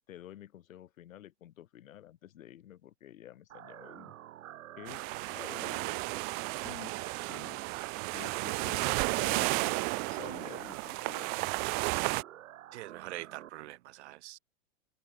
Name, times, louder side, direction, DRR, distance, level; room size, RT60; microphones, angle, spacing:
voice 1, 0.1-4.1 4.8-5.0 5.3-6.1 6.6-7.6 8.1-9.7 10.1-11.5, left 12 dB, 80° left, 7.9 m, -50 dB
sound 1, 3.5-13.5, right 12 dB, 85° right, 4.2 m, -48 dB
sound 2, 4.9-12.2, right 34 dB, 25° right, 0.7 m, -33 dB
voice 2, 12.7-14.4, right 16 dB, 55° right, 2.0 m, -44 dB
supercardioid pair, 170°, 39 cm